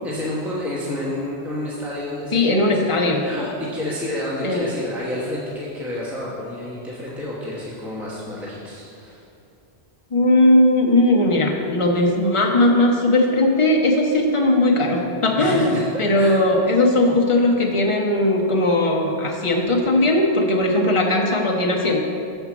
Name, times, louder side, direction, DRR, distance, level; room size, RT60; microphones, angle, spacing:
voice 1, 0.0-9.2 15.4-16.4, left 1 dB, ahead, -7 dB, 1.0 m, -30 dB
voice 2, 2.3-3.2 4.4-4.7 10.1-22.0, left 1 dB, 30° left, 0 dB, 0.8 m, -18 dB
7.1 x 4.5 x 6.0 m, 2.6 s
omnidirectional pair, 1.1 m